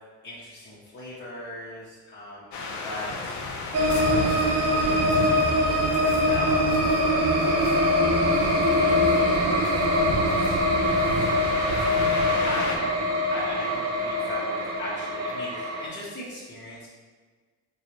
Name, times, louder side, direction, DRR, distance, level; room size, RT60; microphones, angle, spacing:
voice 1, 0.2-3.4 3.7-12.1 12.4-16.9, left 1 dB, 35° left, -8 dB, 1.0 m, -40 dB
sound 1, 2.5-12.8, left 3 dB, 70° left, 0.6 m, -34 dB
sound 2, 3.7-15.9, left 1 dB, 55° right, 0.6 m, -23 dB
4.6 x 2.3 x 2.9 m, 1.4 s
cardioid pair, 90°, 30 cm